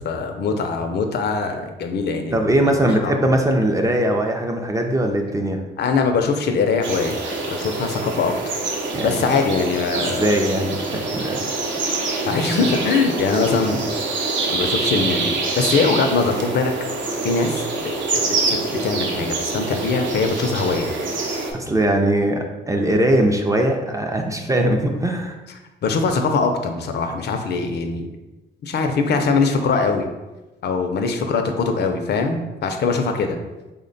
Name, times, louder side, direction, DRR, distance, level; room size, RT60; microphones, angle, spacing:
voice 1, 0.0-3.2 5.8-7.2 7.5-8.3 9.0-10.4 12.2-13.9 14.5-16.7 17.2-20.9 25.8-28.1 28.6-30.1 30.6-33.4, left 4 dB, 60° left, 5 dB, 0.5 m, -22 dB
voice 2, 2.3-5.6 8.9-9.2 10.0-11.5 21.5-25.4, right 1 dB, 15° right, 3 dB, 0.4 m, -20 dB
sound 1, 6.8-21.5, right 3 dB, 70° right, 0.7 m, -25 dB
3.4 x 2.1 x 3.9 m, 1.1 s
cardioid pair, 90°, 20 cm